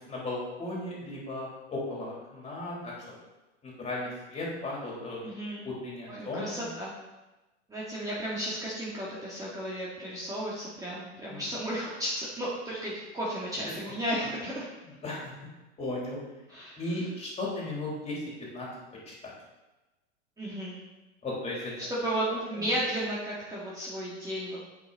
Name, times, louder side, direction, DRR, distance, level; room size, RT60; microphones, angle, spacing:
voice 1, 0.1-2.9 3.6-5.2 5.6-6.5 11.3-11.4 15.0-15.3 15.8-16.2 16.8-18.2 18.5-18.7 19.1-19.3 21.2-21.7 22.3-22.6, left 2 dB, 20° left, -4 dB, 3.6 m, -35 dB
voice 2, 5.2-5.6 6.1-6.9 7.7-14.7 16.5-17.1 20.4-20.8 21.9-24.6, right 1 dB, 10° right, -7 dB, 2.0 m, -34 dB
8.7 x 8.3 x 4.2 m, 1.1 s
hypercardioid pair, 130°, 35 cm